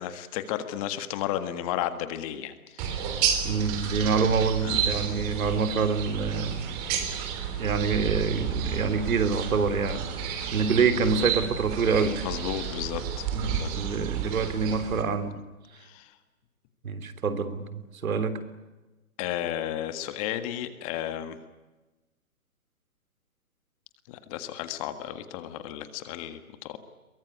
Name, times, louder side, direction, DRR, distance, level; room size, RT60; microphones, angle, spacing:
voice 1, 0.0-3.2 4.6-4.8 10.6-10.7 11.1-11.2 12.2-13.7 15.8-16.1 19.2-21.4 24.1-26.8, left 11 dB, 25° left, 10 dB, 1.7 m, -33 dB
sound 1, 2.8-15.0, right 8 dB, 25° right, 3.4 m, -31 dB
voice 2, 3.4-6.6 7.5-10.1 10.5-12.2 13.3-15.4 16.8-18.4, right 5 dB, 70° right, 11 dB, 3.3 m, -26 dB
23.0 x 22.5 x 10.0 m, 1.1 s
hypercardioid pair, 155°, 43 cm